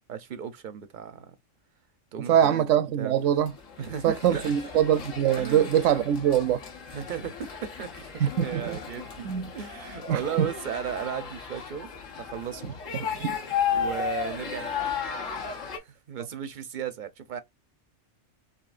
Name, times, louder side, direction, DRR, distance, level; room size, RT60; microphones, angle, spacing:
voice 1, 0.1-1.4 2.1-2.7 3.0-3.1 3.8-4.5 5.4-5.7 6.9-8.1 8.4-11.9 12.2-12.7 13.7-15.0 15.7-17.4, right 8 dB, 55° right, 0.6 m, -36 dB
voice 2, 2.3-3.5 4.0-6.6 8.2-8.8 9.2-9.5 10.1-10.5 13.1-13.3, right 10 dB, 80° right, 0.9 m, -23 dB
sound 1, 3.5-15.8, left 7 dB, 85° left, 1.4 m, -34 dB
5.5 x 2.7 x 2.5 m
omnidirectional pair, 1.3 m